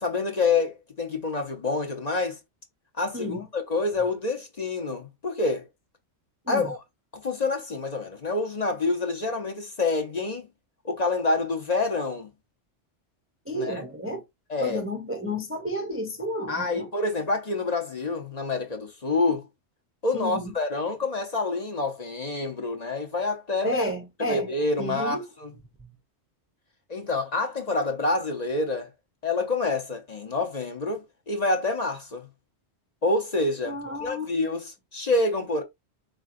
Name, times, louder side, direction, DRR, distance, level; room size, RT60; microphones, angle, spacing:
voice 1, 0.0-2.4 3.0-5.7 6.5-6.8 7.1-10.5 10.8-12.3 13.5-13.8 14.5-14.8 16.5-19.5 20.0-23.8 24.2-25.5 26.9-28.9 29.2-32.3 33.0-35.6, left 3 dB, 40° left, 0.8 m, -27 dB
voice 2, 3.1-3.4 6.5-6.7 13.5-14.2 14.6-16.9 20.1-20.5 23.6-24.5 24.8-25.2 33.7-34.3, equal, 15° right, 0.5 m, -31 dB
4.3 x 3.8 x 2.5 m
omnidirectional pair, 1.2 m